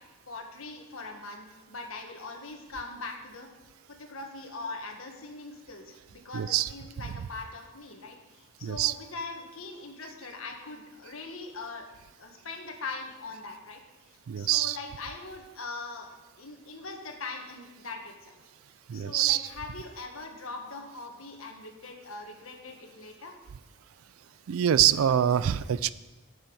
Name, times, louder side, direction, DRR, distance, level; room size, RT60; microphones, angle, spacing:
voice 1, 0.3-3.5 3.9-11.9 12.2-13.8 14.1-16.1 16.4-18.3 18.9-23.3, left 3 dB, 85° left, 3 dB, 1.6 m, -41 dB
voice 2, 6.3-6.7 8.6-8.9 14.3-14.8 18.9-19.5 24.5-25.9, right 10 dB, 85° right, 17 dB, 0.4 m, -25 dB
9.1 x 7.2 x 5.5 m, 1.1 s
head